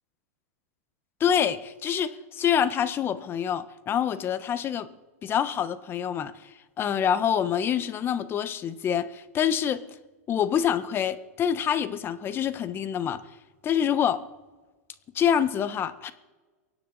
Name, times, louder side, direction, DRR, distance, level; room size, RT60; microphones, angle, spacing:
voice 1, 1.2-4.9 5.2-6.3 6.8-9.8 10.3-13.2 13.6-14.2 15.1-16.1, left 9 dB, 25° left, 1.1 m, -26 dB
24.0 x 9.5 x 4.1 m
hypercardioid pair, 125°, 8 cm